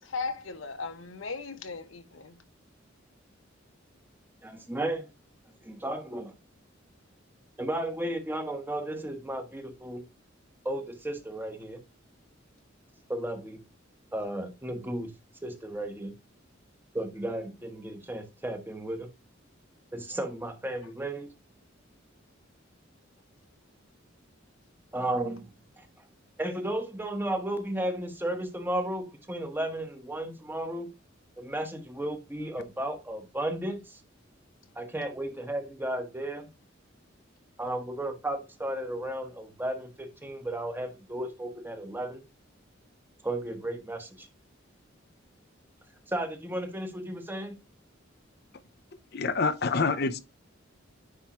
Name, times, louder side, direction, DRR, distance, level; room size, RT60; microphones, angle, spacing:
voice 1, 0.0-2.4, left 4 dB, 90° left, 1.0 m, -37 dB
voice 2, 4.4-5.1 5.6-6.3 7.6-10.0 10.6-11.8 13.1-13.6 14.1-15.1 15.4-16.1 16.9-19.1 19.9-21.3 24.9-25.5 25.8-25.9 26.4-30.9 31.4-34.0 34.8-36.5 37.6-42.2 43.2-44.3 46.1-47.5, right 1 dB, 10° right, 1.1 m, -34 dB
voice 3, 49.1-50.2, left 4 dB, 55° left, 0.7 m, -26 dB
9.9 x 3.5 x 3.0 m
head